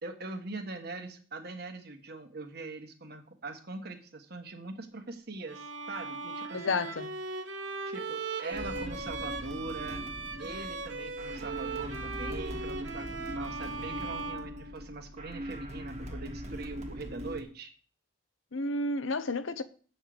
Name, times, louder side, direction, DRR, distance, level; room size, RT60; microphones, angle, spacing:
voice 1, 0.0-6.8 7.8-10.0 10.4-17.7, right 3 dB, 55° right, 1.4 m, -42 dB
Bowed string instrument, 5.5-15.2, right 3 dB, 70° right, 1.3 m, -39 dB
voice 2, 6.5-7.1 18.5-19.6, left 2 dB, 85° left, 0.8 m, -31 dB
sound 1, 8.5-17.4, equal, 35° right, 1.4 m, -41 dB
8.0 x 5.7 x 7.8 m
head